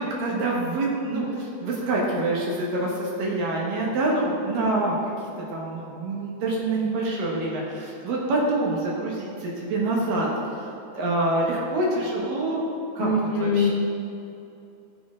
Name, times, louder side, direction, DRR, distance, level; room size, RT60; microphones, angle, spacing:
voice 1, 0.0-5.0 5.5-10.3 10.5-10.6 10.9-12.7 13.0-13.1 13.4-13.7, right 2 dB, 65° right, -3 dB, 2.5 m, -26 dB
voice 2, 13.0-13.7, left 2 dB, 85° left, 0 dB, 2.1 m, -22 dB
15.5 x 7.4 x 2.4 m, 2.7 s
omnidirectional pair, 4.8 m